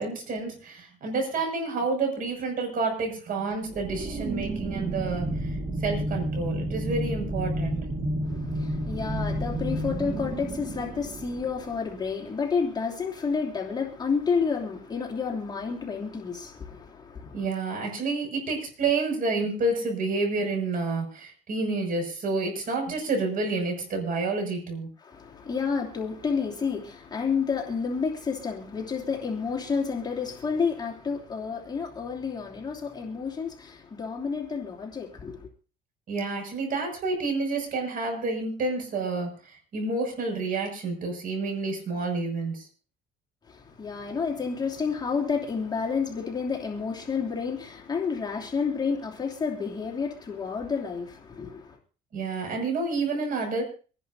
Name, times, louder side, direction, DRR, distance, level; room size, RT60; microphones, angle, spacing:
voice 1, 0.0-5.5 5.8-7.9 17.3-24.9 36.1-42.7 52.1-53.6, right 3 dB, 55° right, 6.6 m, -29 dB
sound 1, 3.7-11.9, right 1 dB, 35° right, 1.9 m, -31 dB
voice 2, 8.2-17.4 25.0-35.5 43.5-51.8, left 5 dB, 25° left, 2.9 m, -30 dB
26.0 x 11.0 x 2.7 m
cardioid pair, 110°, 17 cm